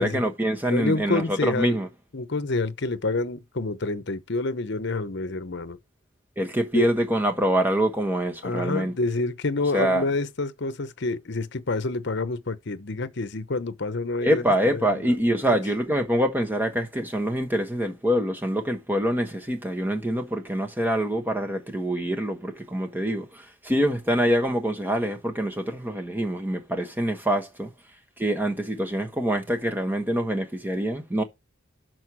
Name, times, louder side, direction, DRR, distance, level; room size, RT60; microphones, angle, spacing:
voice 1, 0.0-1.9 6.4-8.9 9.7-10.1 14.2-27.7 28.2-31.2, equal, 10° right, 1.2 m, -25 dB
voice 2, 0.7-1.8 2.1-5.8 6.7-6.9 8.4-14.4 14.7-15.2 15.4-15.6, left 3 dB, 60° left, 0.8 m, -28 dB
6.4 x 4.4 x 6.1 m
head